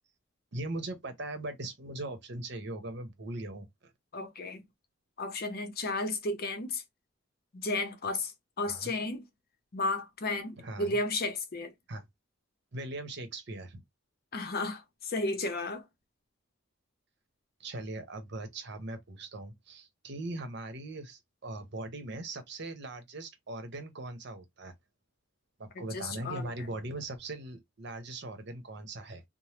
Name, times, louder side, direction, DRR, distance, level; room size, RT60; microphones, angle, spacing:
voice 1, 0.5-3.7 8.6-8.9 10.6-11.0 11.9-12.0 12.7-13.8 17.6-24.7 25.6-29.2, right 2 dB, 60° right, 0.8 m, -40 dB
voice 2, 4.1-4.7 5.2-6.8 7.5-9.2 9.7-11.7 14.3-15.9 25.7-26.7, left 2 dB, 50° left, 0.7 m, -33 dB
3.3 x 2.1 x 2.8 m
head